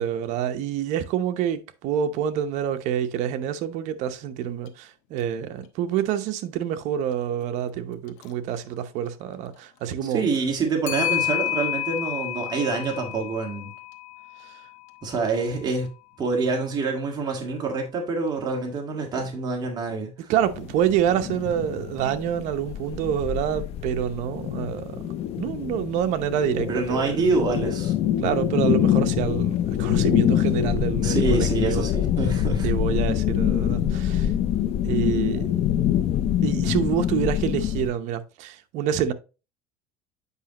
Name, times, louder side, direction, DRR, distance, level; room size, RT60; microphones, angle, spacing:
voice 1, 0.0-10.2 14.5-14.6 19.1-19.2 20.3-25.0 25.4-27.2 28.2-31.9 32.6-34.3 34.8-35.5 36.4-39.1, right 9 dB, 60° right, 0.8 m, -27 dB
Clock, 4.7-4.8 5.2-5.3 8.1-8.3 10.9-15.1, left 13 dB, 65° left, 0.9 m, -30 dB
voice 2, 10.1-13.7 15.0-15.9 16.2-20.3 26.7-28.1 31.0-32.7, right 4 dB, 30° right, 1.8 m, -26 dB
sound 1, 20.4-37.9, left 10 dB, 50° left, 0.6 m, -25 dB
8.2 x 5.2 x 2.9 m
cardioid pair, 140°, 14 cm